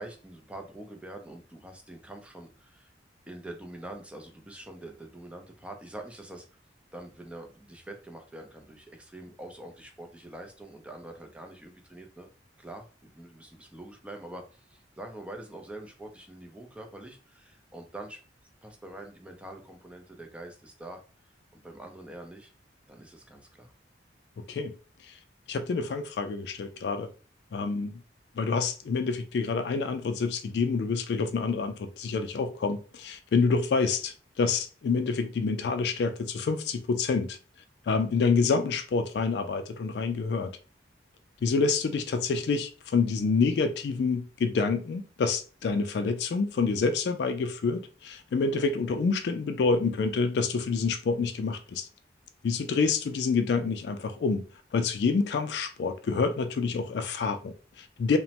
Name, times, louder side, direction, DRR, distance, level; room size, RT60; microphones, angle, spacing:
voice 1, 0.0-2.9 3.3-6.6 6.9-12.3 12.6-18.2 18.6-21.0 21.5-22.5 22.9-23.7, right 1 dB, 5° right, 0.4 m, -45 dB
voice 2, 24.4-24.7 25.0-25.2 25.5-27.1 27.5-28.0 28.4-37.4 37.9-40.5 41.4-51.9 52.4-54.4 54.7-58.2, left 4 dB, 65° left, 0.3 m, -27 dB
3.0 x 2.0 x 2.8 m
head